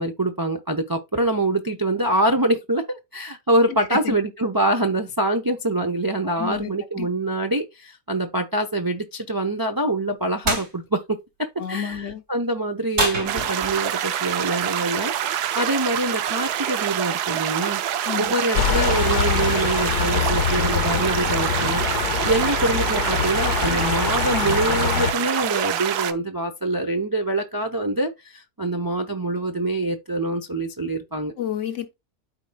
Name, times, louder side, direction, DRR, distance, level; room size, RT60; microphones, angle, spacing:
voice 1, 0.0-15.1 15.5-17.8 18.2-21.8 22.2-31.3, right 2 dB, 30° right, 0.4 m, -25 dB
voice 2, 6.2-7.1 11.6-12.2 18.1-18.3 31.4-32.0, left 9 dB, 60° left, 0.9 m, -30 dB
sound 1, 10.4-10.7 12.9-13.9, right 1 dB, 50° right, 3.1 m, -25 dB
sound 2, 13.3-26.1, right 10 dB, 80° right, 1.2 m, -26 dB
sound 3, 18.5-25.1, left 8 dB, 75° left, 1.3 m, -24 dB
13.0 x 4.4 x 2.3 m
omnidirectional pair, 1.7 m